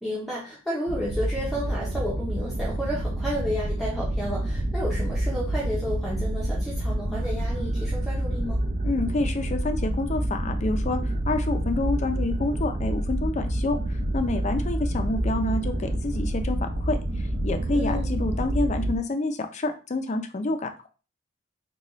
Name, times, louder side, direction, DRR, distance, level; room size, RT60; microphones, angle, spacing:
voice 1, 0.0-8.6 17.7-18.2, equal, ahead, -6 dB, 0.7 m, -32 dB
sound 1, 0.9-19.0, right 1 dB, 40° right, 0.5 m, -28 dB
voice 2, 8.8-13.8 14.1-20.9, left 2 dB, 35° left, 6 dB, 0.4 m, -28 dB
3.9 x 2.3 x 3.0 m, 0.35 s
head